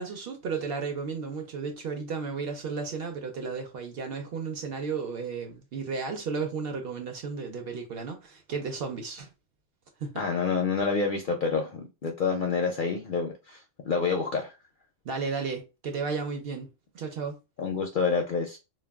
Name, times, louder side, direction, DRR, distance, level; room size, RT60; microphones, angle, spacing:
voice 1, 0.0-9.3 10.0-10.3 15.0-16.7 16.9-17.4, right 5 dB, 60° right, 0.7 m, -33 dB
voice 2, 10.2-13.6 13.8-14.5 17.6-18.6, left 5 dB, 60° left, 0.5 m, -28 dB
2.2 x 2.2 x 3.4 m
omnidirectional pair, 1.3 m